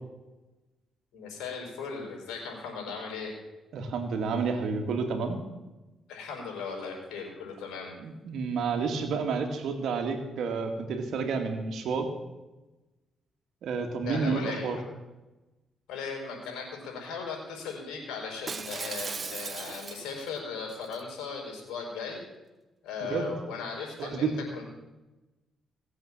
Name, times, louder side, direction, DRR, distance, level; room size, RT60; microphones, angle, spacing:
voice 1, 1.1-3.4 6.1-7.9 14.0-14.8 15.9-22.2 22.8-24.6, left 5 dB, 90° left, 1 dB, 4.8 m, -37 dB
voice 2, 3.7-5.4 8.0-12.1 13.6-14.8 23.0-23.3 24.0-24.3, right 5 dB, 75° right, 5 dB, 2.1 m, -30 dB
Shatter, 18.5-20.3 20.7-21.0, right 5 dB, 45° right, 0.9 m, -37 dB
18.0 x 7.9 x 7.4 m, 1.1 s
cardioid pair, 70°, 0 cm